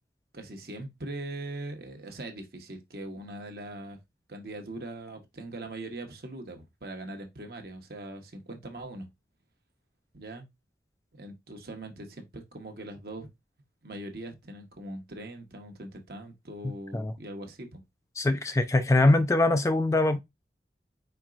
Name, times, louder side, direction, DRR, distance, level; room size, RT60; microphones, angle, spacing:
voice 1, 0.3-4.0 4.3-9.1 10.1-10.5 11.1-13.3 13.8-17.8 19.1-19.2, right 1 dB, 55° right, 1.0 m, -41 dB
voice 2, 18.2-20.2, left 2 dB, 15° left, 0.3 m, -23 dB
4.8 x 4.4 x 2.4 m
head